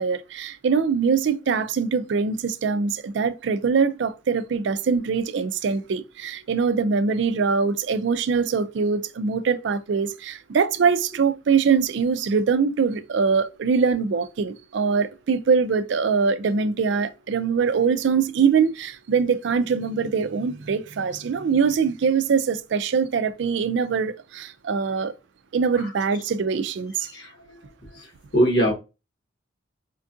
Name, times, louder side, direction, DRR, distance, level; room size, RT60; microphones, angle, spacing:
voice 1, 0.0-25.1 25.5-27.1, right 5 dB, 65° right, 0.4 m, -23 dB
voice 2, 27.1-27.6 27.9-28.1 28.3-28.7, equal, 60° left, 1.4 m, -22 dB
4.4 x 2.4 x 2.5 m
head